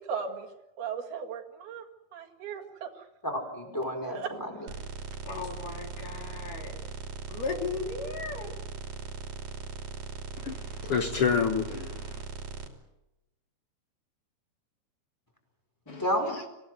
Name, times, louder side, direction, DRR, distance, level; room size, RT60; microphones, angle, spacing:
voice 1, 0.0-0.5 0.8-1.9 2.1-3.1 3.6-4.3, right 6 dB, 70° right, 2 dB, 3.9 m, -37 dB
voice 2, 3.2-4.7 15.9-16.5, equal, 5° left, 2 dB, 4.6 m, -31 dB
sound 1, 4.7-12.7, right 5 dB, 50° right, 4.0 m, -39 dB
voice 3, 5.3-6.8 7.3-8.5, left 4 dB, 55° left, 3 dB, 4.6 m, -36 dB
voice 4, 10.4-12.2 15.9-16.0, left 6 dB, 75° left, 5 dB, 1.3 m, -29 dB
26.5 x 17.0 x 7.9 m, 0.96 s
omnidirectional pair, 4.6 m